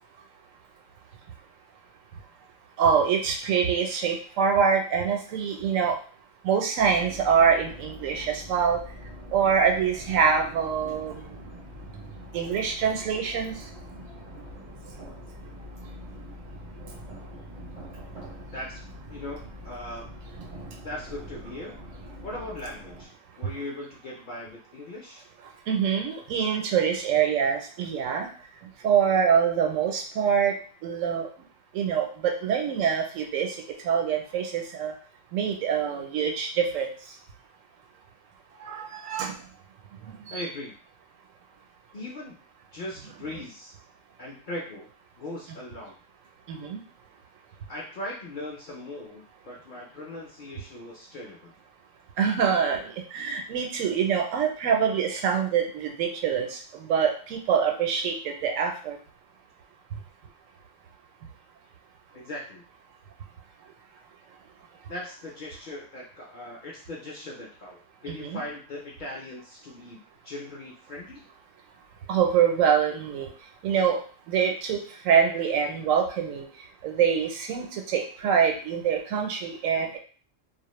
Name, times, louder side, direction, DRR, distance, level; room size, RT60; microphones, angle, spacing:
voice 1, 2.8-6.0 6.4-8.8 9.3-11.2 12.3-13.6 25.7-28.3 28.8-30.6 30.8-31.3 31.7-33.5 33.8-34.9 35.3-36.9 38.6-39.3 40.0-40.4 46.5-46.8 52.2-52.8 53.1-59.0 68.1-68.4 72.1-73.3 73.6-74.0 74.3-76.4 76.8-80.0, right 7 dB, 85° right, 3 dB, 0.9 m, -25 dB
sound 1, 6.8-23.1, equal, 45° right, 0.5 m, -43 dB
voice 2, 19.1-20.0 20.8-21.8 22.2-23.1 23.4-25.2 40.3-40.7 41.9-42.4 42.7-43.7 44.2-44.9 45.2-46.0 47.7-51.5 62.1-62.6 64.9-71.3, left 1 dB, 55° left, -3 dB, 0.5 m, -39 dB
2.4 x 2.0 x 3.0 m, 0.41 s
omnidirectional pair, 1.3 m